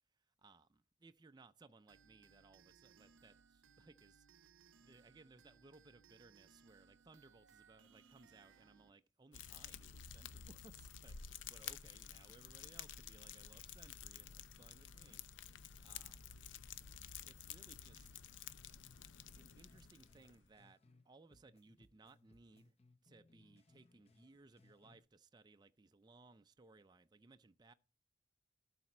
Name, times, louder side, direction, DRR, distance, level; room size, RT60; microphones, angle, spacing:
voice 1, 0.1-11.2 11.5-15.2 15.8-16.3 17.2-18.1 19.4-22.7 23.0-27.7, right 3 dB, 20° right, 0.4 m, -64 dB
sound 1, 1.9-8.9, right 6 dB, 90° right, 0.7 m, -67 dB
Fire, 9.3-20.5, left 8 dB, 80° left, 0.6 m, -52 dB
sound 2, 18.8-21.0 21.3-25.0, left 2 dB, 30° left, 0.8 m, -69 dB
12.0 x 4.2 x 5.9 m
head